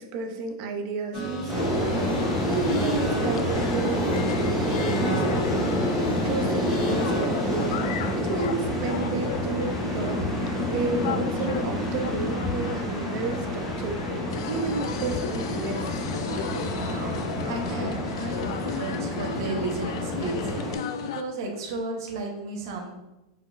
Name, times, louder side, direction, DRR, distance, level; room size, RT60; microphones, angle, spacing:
voice 1, 0.0-15.9, right 4 dB, 35° right, 4 dB, 0.6 m, -32 dB
sound 1, 1.1-7.9, right 3 dB, 35° left, 1.6 m, -35 dB
sound 2, 1.5-20.7, equal, 15° left, 1.1 m, -28 dB
sound 3, 1.6-21.2, left 8 dB, 55° left, 0.3 m, -35 dB
voice 2, 16.6-17.2 17.5-23.0, right 2 dB, 50° right, 0 dB, 1.1 m, -34 dB
5.1 x 4.1 x 2.5 m, 0.96 s
supercardioid pair, 180°, 3 cm